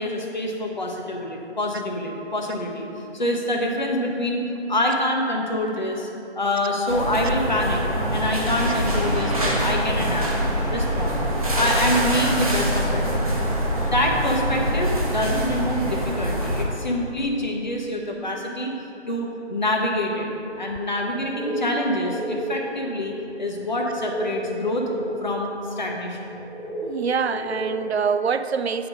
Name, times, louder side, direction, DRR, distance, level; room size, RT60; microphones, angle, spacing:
voice 1, 0.0-2.9 3.1-6.1 6.3-7.8 8.1-10.3 10.7-11.2 11.5-13.1 13.4-13.6 13.9-18.7 19.1-20.3 20.6-24.9 25.2-26.3, left 1 dB, 40° left, 0 dB, 0.9 m, -26 dB
sound 1, 6.9-16.6, equal, 30° right, 1.0 m, -24 dB
sound 2, 8.6-13.2, right 1 dB, 5° right, 0.8 m, -38 dB
sound 3, 19.9-27.9, right 1 dB, 15° left, 1.1 m, -33 dB
voice 2, 26.8-28.9, right 6 dB, 65° right, 11 dB, 0.5 m, -25 dB
8.7 x 4.0 x 5.2 m, 2.9 s
figure-of-eight pair, 165°, 34 cm